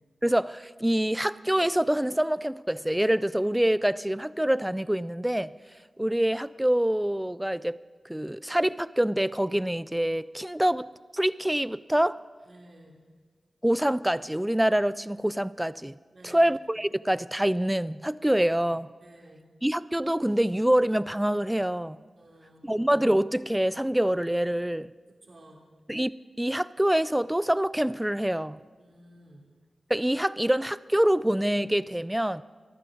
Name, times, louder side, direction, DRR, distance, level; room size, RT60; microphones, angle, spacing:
voice 1, 0.2-5.5 6.0-7.8 8.1-12.2 13.6-16.0 16.2-18.9 19.6-22.0 22.6-24.9 25.9-26.1 26.4-28.6 29.9-32.4, right 1 dB, 5° right, 0.4 m, -25 dB
voice 2, 12.4-13.0 16.1-16.5 19.0-19.4 22.2-22.8 25.2-25.6 28.8-29.5, right 1 dB, 55° right, 3.0 m, -53 dB
22.5 x 14.0 x 3.9 m
wide cardioid pair, 100°, 0 cm